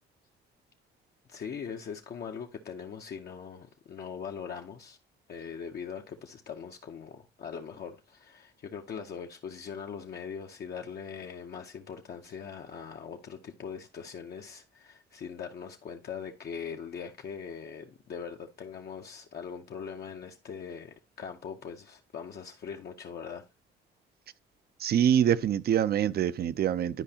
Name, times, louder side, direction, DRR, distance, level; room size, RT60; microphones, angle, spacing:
voice 1, 1.3-5.0 5.3-23.4, left 7 dB, 55° left, 0.7 m, -41 dB
voice 2, 24.8-27.0, right 9 dB, 50° right, 0.5 m, -25 dB
11.0 x 4.8 x 2.8 m
cardioid pair, 90°, 20 cm